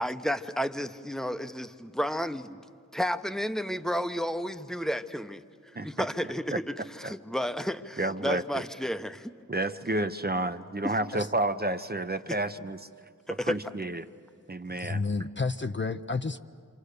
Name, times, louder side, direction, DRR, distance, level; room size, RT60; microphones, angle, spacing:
voice 1, 0.0-2.6 2.9-5.4 5.8-6.5 7.0-9.3 13.3-13.6, equal, ahead, 9 dB, 0.8 m, -31 dB
voice 2, 5.7-6.1 6.5-6.6 7.0-7.1 8.0-8.6 9.5-12.8 13.4-14.1 14.5-15.0, right 1 dB, 30° right, 9 dB, 0.7 m, -30 dB
voice 3, 14.8-16.4, left 4 dB, 35° left, 9 dB, 0.6 m, -30 dB
27.5 x 26.5 x 6.7 m, 2.1 s
wide cardioid pair, 55°, 33 cm